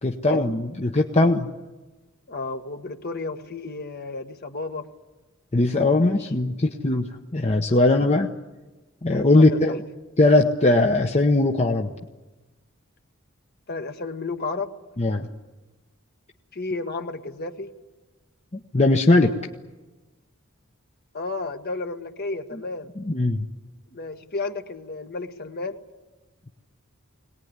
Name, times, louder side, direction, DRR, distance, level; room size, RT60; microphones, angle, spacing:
voice 1, 0.0-1.5 5.5-7.1 7.3-8.3 9.0-9.8 10.2-11.9 15.0-15.3 18.7-19.3 23.0-23.4, left 2 dB, 30° left, 3 dB, 0.9 m, -19 dB
voice 2, 2.3-4.9 6.0-6.3 9.1-9.8 13.7-14.7 16.5-17.7 21.1-22.9 23.9-25.8, left 3 dB, 50° left, 5 dB, 1.5 m, -32 dB
22.5 x 19.0 x 9.6 m, 1.2 s
head